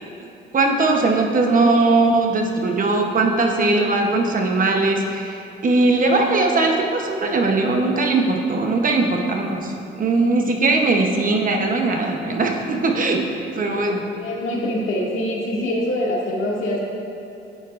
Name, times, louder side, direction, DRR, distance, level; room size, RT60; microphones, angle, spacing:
voice 1, 0.5-13.3 13.5-14.1, right 3 dB, 40° right, 2 dB, 0.9 m, -20 dB
voice 2, 14.2-16.8, left 1 dB, 75° left, -4 dB, 2.0 m, -24 dB
10.5 x 8.9 x 2.5 m, 2.9 s
cardioid pair, 115°, 21 cm